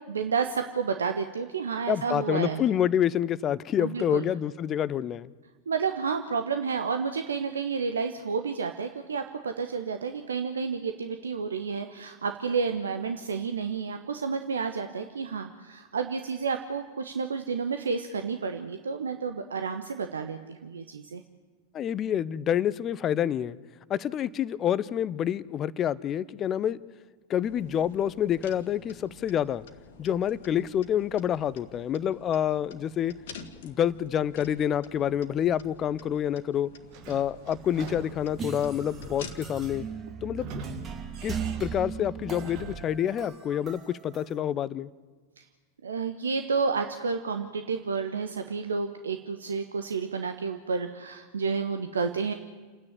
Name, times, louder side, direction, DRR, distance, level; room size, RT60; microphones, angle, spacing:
voice 1, 0.1-2.6 3.8-4.3 5.7-21.2 45.4-45.5 45.8-52.3, right 5 dB, 70° right, 7 dB, 1.1 m, -30 dB
voice 2, 1.9-5.3 21.7-23.6 23.9-26.8 27.3-29.6 30.0-33.1 33.6-36.7 37.1-39.9 40.2-40.6 41.2-44.9, left 10 dB, 30° left, 19 dB, 0.6 m, -27 dB
sound 1, 27.4-39.8, left 5 dB, 55° left, 1.7 m, -49 dB
Sliding door / Squeak, 36.9-43.0, right 4 dB, 45° right, 2.0 m, -44 dB
sound 2, 38.4-44.4, right 6 dB, 25° right, 2.3 m, -38 dB
29.0 x 9.7 x 10.0 m, 1.4 s
figure-of-eight pair, 90°, 0 cm